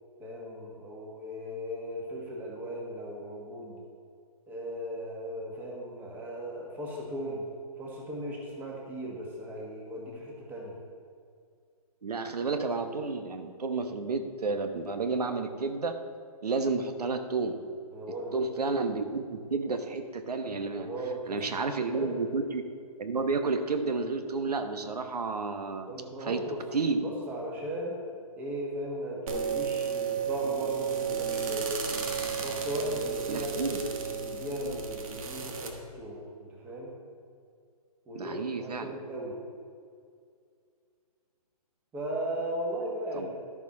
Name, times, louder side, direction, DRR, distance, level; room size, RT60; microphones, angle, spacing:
voice 1, 0.2-3.8 4.5-7.5 7.8-10.8 17.9-18.4 20.8-21.4 21.7-22.2 25.9-26.6 27.0-28.0 28.4-31.8 32.4-33.8 34.2-36.9 38.1-39.4 41.9-43.3, equal, 10° right, -2 dB, 1.3 m, -37 dB
voice 2, 12.0-16.0 16.4-17.6 18.3-20.9 21.3-22.6 23.0-25.9 26.2-26.4 26.7-27.1 33.3-33.8 38.1-38.9 43.1-43.3, right 4 dB, 90° right, 7 dB, 1.1 m, -31 dB
sound 1, 29.3-35.7, right 6 dB, 60° right, 1.5 m, -33 dB
11.5 x 7.2 x 4.2 m, 2.2 s
hypercardioid pair, 160°, 20 cm